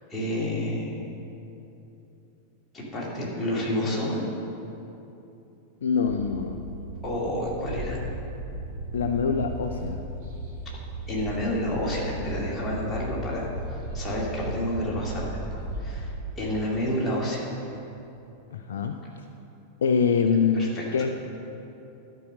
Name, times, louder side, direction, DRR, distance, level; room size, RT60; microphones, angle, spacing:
voice 1, 0.1-1.0 2.7-4.2 7.0-8.0 11.1-15.3 15.5-16.1 16.4-17.5 20.5-20.8, left 1 dB, 15° left, -6 dB, 2.5 m, -29 dB
voice 2, 5.8-6.6 8.9-10.0 18.5-19.0 19.8-21.1, left 6 dB, 65° left, 6 dB, 0.4 m, -24 dB
huinan taxi, 6.1-16.1, right 1 dB, 45° right, 1.9 m, -35 dB
12.0 x 4.8 x 6.3 m, 2.9 s
figure-of-eight pair, 90°, 0 cm